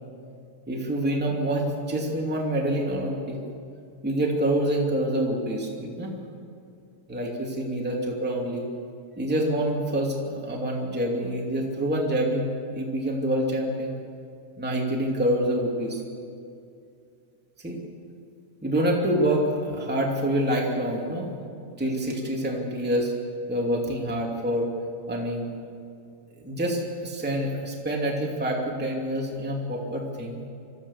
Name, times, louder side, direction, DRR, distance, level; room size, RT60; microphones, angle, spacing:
voice 1, 0.7-3.4 4.0-6.1 7.1-8.6 9.2-13.9 14.6-16.0 17.6-17.8 18.6-21.3 21.8-23.1 23.5-24.7 25.1-25.5 26.4-30.4, right 1 dB, 5° right, -2 dB, 0.8 m, -26 dB
25.5 x 15.0 x 7.4 m, 2.4 s
omnidirectional pair, 5.5 m